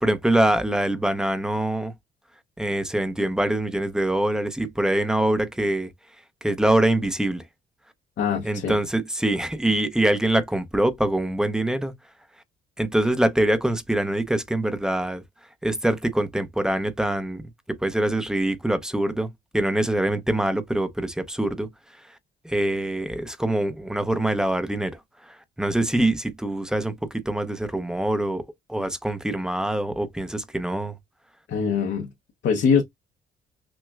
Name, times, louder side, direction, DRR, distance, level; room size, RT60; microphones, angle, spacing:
voice 1, 0.0-1.9 2.6-5.9 6.4-7.4 8.4-11.9 12.8-15.2 15.6-17.4 17.8-19.3 19.5-21.7 22.4-25.0 25.6-28.4 28.7-30.9, right 1 dB, 5° right, 0.7 m, -24 dB
voice 2, 8.2-8.8 31.5-32.1 32.4-32.8, left 6 dB, 65° left, 0.8 m, -22 dB
6.0 x 2.1 x 2.4 m
cardioid pair, 90°, 20 cm